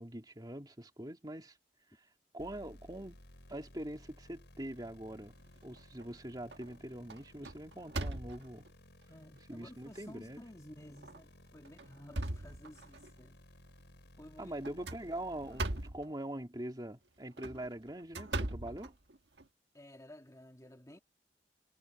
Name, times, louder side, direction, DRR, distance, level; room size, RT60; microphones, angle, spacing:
voice 1, 0.0-1.6 2.3-3.2 3.5-5.4 5.6-8.6 9.5-10.4 14.4-18.9, right 1 dB, 25° right, 2.8 m, -43 dB
sound 1, 2.4-15.9, left 1 dB, 85° left, 5.3 m, -58 dB
sound 2, 5.5-6.1 6.5-6.8 7.1-8.7 9.4-9.5 9.9-10.0 10.9-11.2 11.6-13.1 14.6-16.1 17.2-19.5, right 2 dB, 85° right, 1.5 m, -40 dB
voice 2, 9.1-13.4 14.2-14.6 19.7-21.0, left 1 dB, 20° left, 1.8 m, -54 dB
head